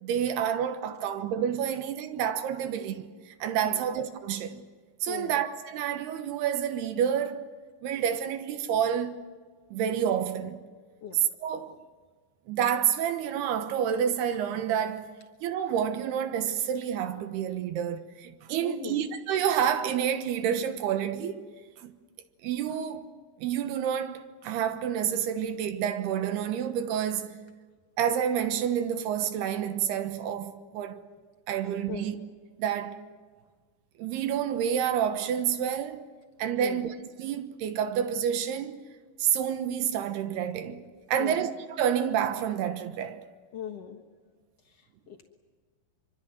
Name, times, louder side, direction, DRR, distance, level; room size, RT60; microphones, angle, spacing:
voice 1, 0.0-4.6 5.0-7.5 7.8-9.2 9.7-10.6 11.4-11.8 12.5-15.1 15.4-21.5 21.8-21.9 22.4-23.1 23.4-27.4 28.0-31.0 31.5-32.2 32.6-33.0 34.0-36.1 36.4-38.8 39.2-41.5 41.8-43.2, right 9 dB, 75° right, 3.0 m, -29 dB
voice 2, 5.1-5.4 11.0-11.2 18.6-19.1 30.9-31.0 31.6-32.1 36.6-36.8 41.2-41.5 43.5-44.0 44.6-45.2, left 8 dB, 85° left, 1.3 m, -40 dB
25.0 x 25.0 x 7.9 m
omnidirectional pair, 5.1 m